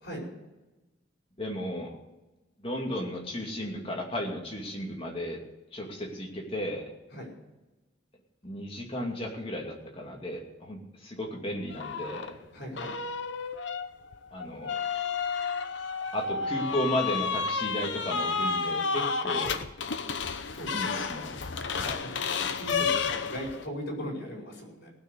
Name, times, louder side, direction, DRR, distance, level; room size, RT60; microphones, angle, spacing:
voice 1, 1.4-1.9 2.6-5.4 5.7-6.9 8.4-12.4 14.3-14.7 16.1-19.5 20.7-21.4 21.7-22.0, equal, 25° left, 0 dB, 2.5 m, -34 dB
sound 1, 11.7-12.3 12.8-23.7, left 5 dB, 70° left, 0.9 m, -31 dB
voice 2, 12.5-13.0 20.5-21.1 22.0-22.1 22.5-24.9, equal, 55° left, -1 dB, 4.9 m, -38 dB
18.5 x 6.6 x 7.9 m, 1.1 s
head